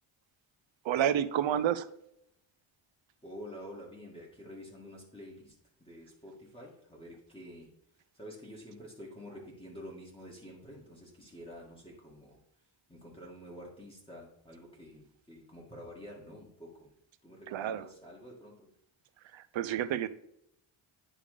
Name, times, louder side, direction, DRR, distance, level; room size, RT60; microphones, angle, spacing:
voice 1, 0.8-1.9 17.5-17.8 19.3-20.1, right 10 dB, 65° right, 14 dB, 0.7 m, -29 dB
voice 2, 3.2-12.4 12.9-16.9 17.2-18.7, equal, 10° left, -4 dB, 2.0 m, -49 dB
10.0 x 3.5 x 5.0 m, 0.76 s
cardioid pair, 110°, 50 cm